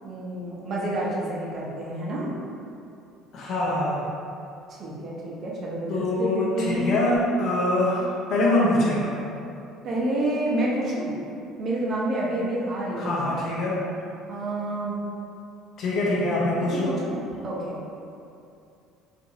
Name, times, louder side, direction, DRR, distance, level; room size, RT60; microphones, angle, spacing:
voice 1, 0.0-2.3 4.7-7.0 9.8-11.1 11.6-13.3 14.3-15.0 16.7-17.8, right 1 dB, 40° right, -5 dB, 0.6 m, -29 dB
voice 2, 3.3-4.1 5.9-9.2 13.0-13.8 15.8-16.9, left 1 dB, 50° left, -6 dB, 0.6 m, -24 dB
2.9 x 2.5 x 2.7 m, 2.6 s
cardioid pair, 135°, 0 cm